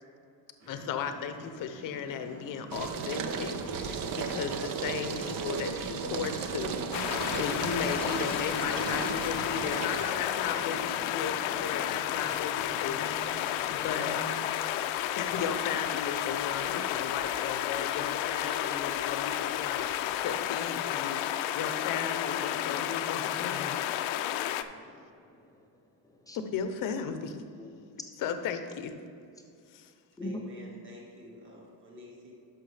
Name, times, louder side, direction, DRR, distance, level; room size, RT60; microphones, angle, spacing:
sound 1, 0.6-14.5, right 2 dB, 90° right, 2.1 m, -50 dB
voice 1, 0.7-6.8 7.3-13.1 13.4-14.2 15.2-23.8 26.3-27.4 28.2-28.9 29.7-29.9, left 6 dB, 45° left, 8 dB, 0.7 m, -36 dB
sound 2, 2.7-20.1, right 5 dB, 50° right, 0.6 m, -37 dB
sound 3, 6.9-24.6, left 12 dB, 85° left, 0.6 m, -31 dB
voice 2, 22.5-23.3 24.2-25.1 26.3-26.4 27.6-27.9 30.2-30.4, left 1 dB, 10° left, 2 dB, 0.4 m, -44 dB
voice 3, 30.2-32.3, left 1 dB, 25° right, -2 dB, 1.6 m, -49 dB
12.0 x 5.7 x 3.3 m, 2.5 s
cardioid pair, 150°, 45 cm